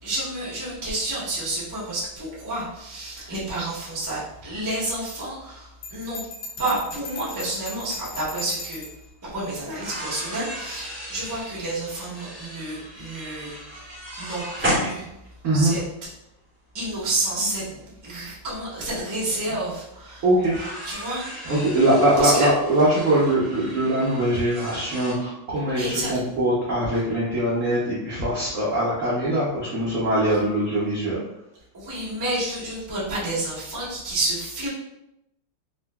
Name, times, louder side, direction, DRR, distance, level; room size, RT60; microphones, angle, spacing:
voice 1, 0.0-6.2 6.6-8.9 9.2-13.9 14.2-15.1 15.5-15.8 16.7-17.7 18.0-20.2 20.8-21.2 22.2-22.5 25.8-26.1 31.7-34.7, right 2 dB, 30° right, -8 dB, 0.3 m, -29 dB
Bell, 5.8-9.0, left 2 dB, 75° left, 1.5 m, -37 dB
sound 1, 9.7-15.6 16.9-17.0 18.8-18.9 19.2-19.3 20.4-25.1, equal, 10° right, 0.7 m, -34 dB
voice 2, 15.4-15.7 17.4-17.5 20.2-20.6 21.4-31.2, right 1 dB, 80° right, -7 dB, 0.7 m, -22 dB
3.7 x 2.5 x 2.2 m, 0.85 s
omnidirectional pair, 2.4 m